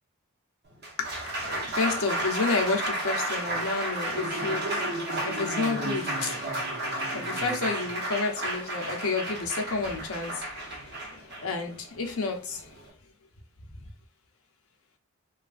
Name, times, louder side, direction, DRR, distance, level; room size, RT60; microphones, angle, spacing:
Applause, 0.6-12.9, right 1 dB, 50° right, 0.8 m, -32 dB
voice 1, 1.0-12.7, left 4 dB, 80° left, 0.7 m, -31 dB
3.2 x 2.3 x 2.4 m
head